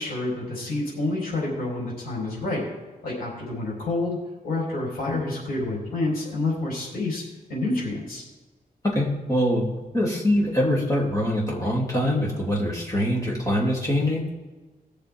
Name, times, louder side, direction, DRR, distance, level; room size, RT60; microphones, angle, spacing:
voice 1, 0.0-2.6 3.0-4.2 4.4-7.2 7.5-8.2, left 2 dB, 70° left, -3 dB, 4.3 m, -28 dB
voice 2, 8.9-9.7 9.9-14.2, equal, 20° left, -4 dB, 3.0 m, -23 dB
20.0 x 6.8 x 3.6 m, 1.2 s
wide cardioid pair, 155°, 16 cm